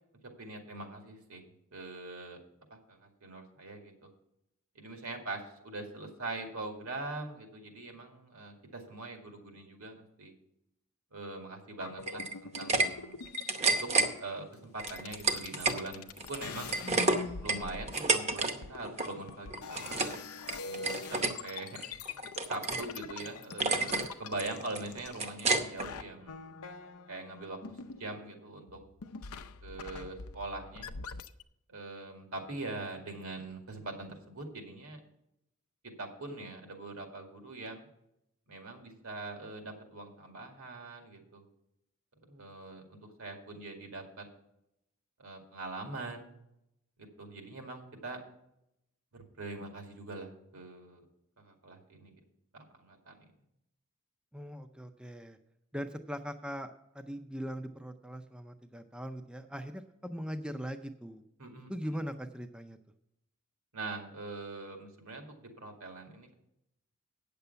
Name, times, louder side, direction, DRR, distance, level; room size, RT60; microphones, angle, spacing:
voice 1, 0.4-1.4 1.7-2.4 2.7-4.1 4.8-10.3 11.1-13.2 13.7-13.9 14.2-16.7 17.4-20.1 20.4-21.8 22.1-22.2 22.5-26.5 27.1-27.6 28.0-28.8 29.6-30.9 31.7-35.0 35.8-37.9 38.5-41.4 42.3-44.2 45.2-46.4 47.2-48.2 49.1-51.1 51.4-52.1 52.5-53.1 61.4-61.7 63.7-66.3, right 2 dB, 75° right, 4 dB, 2.1 m, -43 dB
sound 1, 11.7-13.7 14.5-14.6 14.8-25.5 25.8-28.4 28.7-31.4, left 5 dB, 80° left, 0.6 m, -44 dB
sound 2, 12.0-12.9 13.2-14.1 14.8-15.8 16.2-18.5 18.8-19.1 19.5-20.2 20.5-21.3 21.8-22.9 23.2-23.3 23.6-24.1 24.4-25.9, right 3 dB, 30° right, 0.8 m, -30 dB
voice 2, 54.3-55.4 55.7-61.2 61.7-62.8, equal, 5° right, 8 dB, 0.5 m, -40 dB
9.1 x 6.8 x 6.8 m, 0.82 s
head